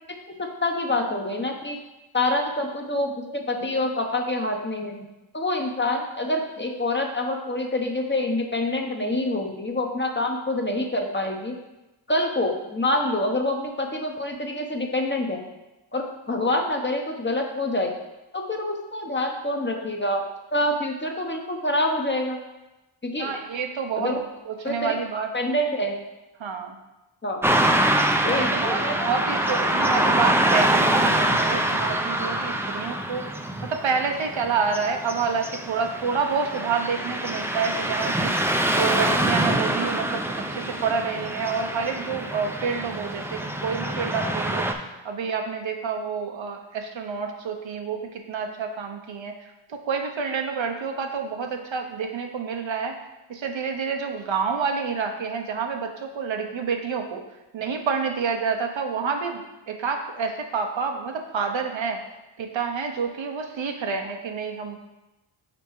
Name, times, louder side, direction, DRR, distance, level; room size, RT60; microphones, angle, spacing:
voice 1, 0.4-1.8 2.1-5.1 5.3-11.5 12.1-15.4 15.9-17.9 18.3-20.2 20.5-22.4 23.0-23.3 24.0-24.2 24.6-24.9 25.3-26.0 27.2-27.4 28.3-29.4, left 1 dB, 25° left, 2 dB, 0.8 m, -26 dB
voice 2, 23.2-24.2 24.5-25.3 26.4-26.8 28.2-33.3 33.6-44.7 45.0-48.0 48.3-49.3 49.7-53.0 53.3-57.2 57.5-59.4 59.7-62.0 62.4-64.8, right 5 dB, 65° right, 4 dB, 0.9 m, -28 dB
Car passing by / Traffic noise roadway noise, 27.4-44.7, right 1 dB, 5° right, 0.5 m, -25 dB
5.3 x 4.4 x 4.6 m, 1.0 s
cardioid pair, 60°, 48 cm